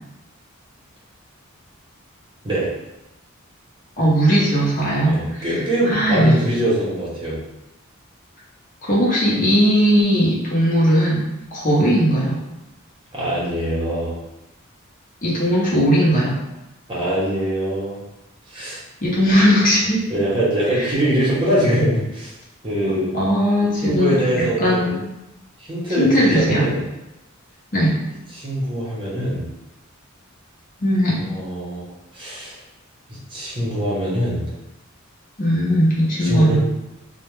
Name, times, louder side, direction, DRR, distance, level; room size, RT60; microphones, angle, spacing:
voice 1, 4.0-5.5 5.9-6.4 8.8-11.2 11.5-12.4 15.2-16.4 18.6-18.7 19.0-20.0 20.7-20.9 22.9-25.0 26.0-26.7 27.7-28.0 30.8-31.2 35.4-36.6, equal, 40° left, -6 dB, 0.7 m, -18 dB
voice 2, 5.0-7.4 13.1-14.1 16.9-18.0 18.5-18.8 20.1-22.3 22.6-23.1 23.8-25.0 25.6-26.8 28.3-29.4 31.3-32.6 33.3-34.4 36.2-36.6, right 1 dB, 25° right, -6 dB, 0.7 m, -23 dB
2.4 x 2.1 x 3.0 m, 0.92 s
head